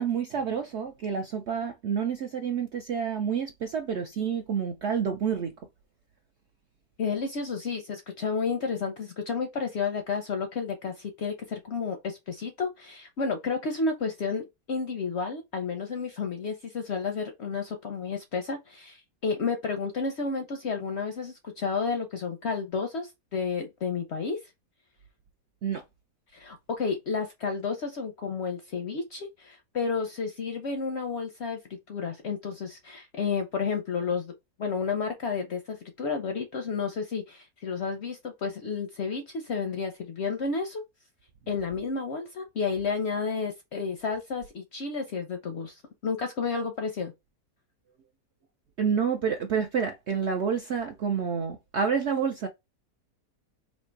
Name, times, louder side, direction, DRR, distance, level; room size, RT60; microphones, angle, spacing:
voice 1, 0.0-5.5 25.6-25.8 48.8-52.5, right 7 dB, 70° right, 0.6 m, -28 dB
voice 2, 7.0-24.4 26.3-34.3 34.6-40.8 41.5-47.1, left 5 dB, 60° left, 0.7 m, -31 dB
3.2 x 2.7 x 4.5 m
omnidirectional pair, 1.7 m